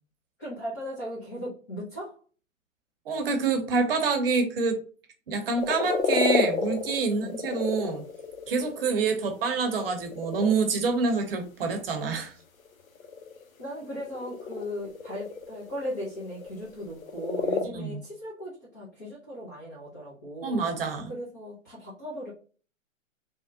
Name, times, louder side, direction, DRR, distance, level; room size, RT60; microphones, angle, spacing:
voice 1, 0.4-2.2 7.1-7.4 13.6-20.6 21.1-22.3, equal, 15° left, -7 dB, 0.4 m, -37 dB
voice 2, 3.1-4.8 5.3-8.0 8.5-12.3 17.7-18.0 20.4-21.1, right 4 dB, 45° right, 5 dB, 0.8 m, -27 dB
sound 1, 5.6-8.9 9.4-10.6 12.6-17.6, left 4 dB, 85° left, 0.6 m, -30 dB
3.4 x 2.1 x 2.6 m, 0.39 s
figure-of-eight pair, 130°, 40 cm